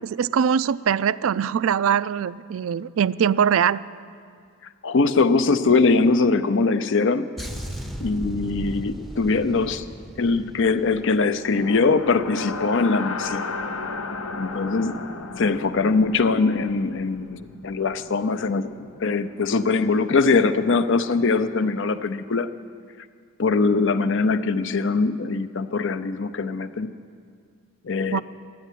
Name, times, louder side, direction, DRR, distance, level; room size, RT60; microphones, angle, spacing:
voice 1, 0.1-3.8 28.1-28.2, right 8 dB, 65° right, 17 dB, 0.3 m, -22 dB
voice 2, 4.8-7.3 8.0-9.8 10.2-13.5 14.4-15.0 15.4-22.5 23.4-26.9 27.8-28.2, left 4 dB, 60° left, 11 dB, 0.6 m, -22 dB
sound 1, 7.4-11.9 12.2-12.5, equal, ahead, 0.6 m, -36 dB
sound 2, 11.5-19.5, left 3 dB, 80° left, 0.9 m, -34 dB
14.0 x 9.3 x 9.9 m, 2.2 s
head